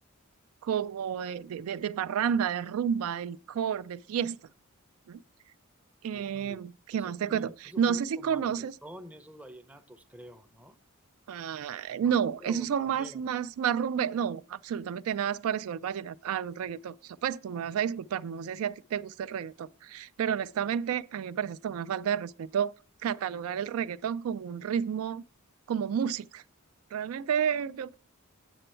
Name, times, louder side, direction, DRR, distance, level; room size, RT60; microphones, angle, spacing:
voice 1, 0.6-4.4 5.1-5.2 6.0-8.8 11.3-22.7 23.0-25.2 25.7-26.4 26.9-27.9, right 8 dB, 75° right, 0.3 m, -31 dB
voice 2, 6.1-6.6 7.0-10.8 11.9-12.1 12.4-13.2, equal, 5° right, 0.5 m, -48 dB
7.9 x 6.8 x 4.4 m
head